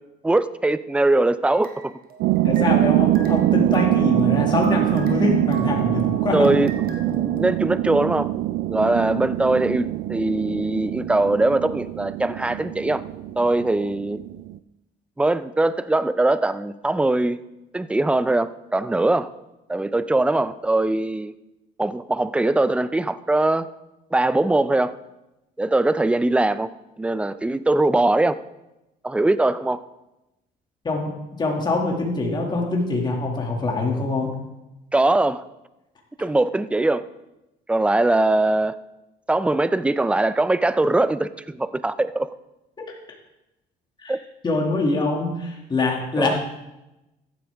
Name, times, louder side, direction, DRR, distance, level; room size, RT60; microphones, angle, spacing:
voice 1, 0.2-1.9 6.3-6.7 7.1-8.3 8.7-13.0 13.4-14.2 15.2-17.4 17.7-19.3 19.7-21.3 21.8-23.7 24.1-24.9 25.6-26.7 27.0-28.4 29.0-29.8 34.9-35.4 36.2-37.0 37.7-38.8 39.3-42.3 44.1-44.2 46.2-46.4, right 2 dB, 5° right, 14 dB, 0.4 m, -21 dB
sound 1, 1.4-2.9 3.1-7.4, right 3 dB, 60° right, 1.7 m, -41 dB
sound 2, 2.2-14.6, right 15 dB, 85° right, 0.4 m, -23 dB
voice 2, 2.4-6.5 30.8-34.3 42.8-42.9 44.0-44.1 44.4-46.4, left 3 dB, 25° left, 0 dB, 2.2 m, -24 dB
14.5 x 10.0 x 3.5 m, 0.95 s
cardioid pair, 110°, 17 cm